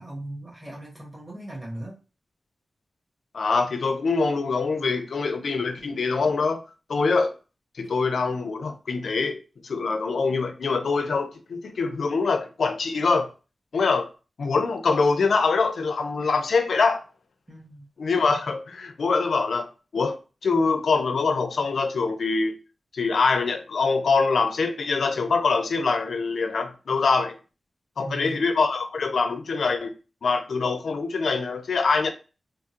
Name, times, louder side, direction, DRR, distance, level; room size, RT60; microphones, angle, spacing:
voice 1, 0.0-2.0 17.5-17.9 28.0-28.4, right 1 dB, 25° right, 1.5 m, -38 dB
voice 2, 3.3-6.6 6.9-7.3 7.8-13.3 13.7-14.1 14.4-17.0 18.0-22.5 22.9-27.4 28.0-29.9 30.2-32.1, left 4 dB, 85° left, 0.5 m, -24 dB
3.6 x 2.0 x 2.8 m
wide cardioid pair, 125°, 0 cm